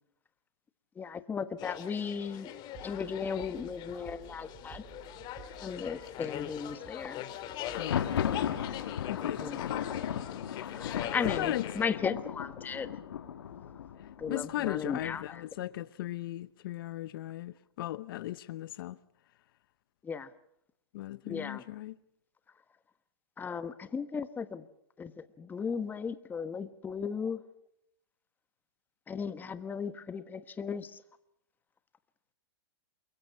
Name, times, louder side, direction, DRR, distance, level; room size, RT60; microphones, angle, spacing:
voice 1, 0.9-2.6 2.8-4.8 5.6-7.5 9.2-9.6 10.7-12.9 14.2-15.4 20.0-20.3 21.3-21.6 23.4-24.7 25.0-27.4 29.1-31.0, left 6 dB, 15° left, 1.2 m, -36 dB
sound 1, 1.6-11.9, left 12 dB, 35° left, 2.6 m, -42 dB
sound 2, 2.7-8.0, right 12 dB, 30° right, 3.0 m, -54 dB
Thunder, 7.6-15.4, left 9 dB, 75° left, 2.6 m, -36 dB
voice 2, 7.7-8.5 9.1-9.7 10.5-11.1 11.4-12.0 14.3-19.0 20.9-22.0, left 14 dB, 60° left, 0.8 m, -38 dB
28.5 x 22.5 x 5.5 m
hypercardioid pair, 130°, 13 cm